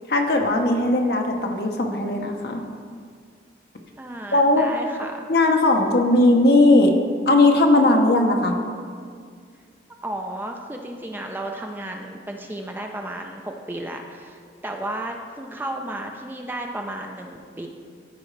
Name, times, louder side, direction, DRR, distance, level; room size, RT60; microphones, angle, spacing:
voice 1, 0.1-2.6 4.3-4.6 5.3-6.9 7.3-8.6, left 2 dB, 65° left, 3 dB, 0.8 m, -18 dB
voice 2, 4.0-5.3 10.0-17.7, right 1 dB, 10° right, 2 dB, 0.4 m, -33 dB
13.0 x 4.8 x 3.2 m, 2.1 s
head